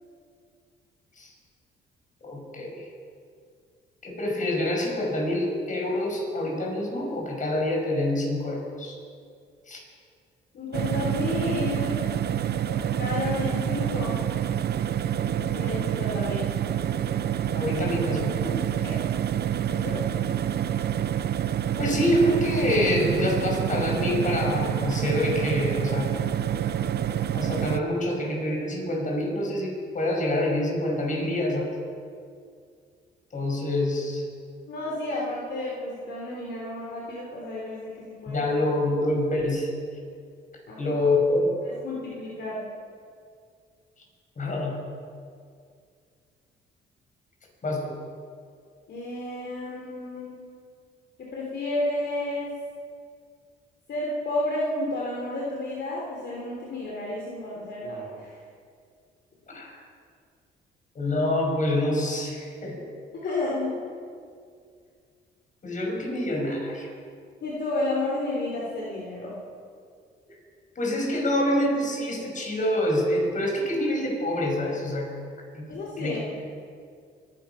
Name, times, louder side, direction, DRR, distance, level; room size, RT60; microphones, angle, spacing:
voice 1, 2.2-2.9 4.0-9.0 9.7-9.8 17.6-18.6 21.8-26.1 27.3-31.7 33.3-34.2 38.3-39.7 40.8-41.6 44.4-44.8 47.6-48.0 59.5-59.8 60.9-62.9 65.6-66.9 70.3-70.4 70.8-75.1 75.5-75.7 76.0-76.2, left 1 dB, 40° left, 0 dB, 5.8 m, -26 dB
voice 2, 10.5-12.0 12.7-14.2 15.4-16.5 18.8-18.9 19.7-20.0 34.7-38.5 40.7-41.1 41.6-42.7 48.9-50.4 51.2-52.5 53.9-58.4 63.1-63.7 67.4-69.4 75.7-76.3, left 2 dB, 60° left, -4 dB, 3.5 m, -31 dB
sound 1, 10.7-27.8, right 10 dB, 55° right, 0.6 m, -27 dB
23.5 x 10.5 x 5.8 m, 2.2 s
cardioid pair, 90°, 20 cm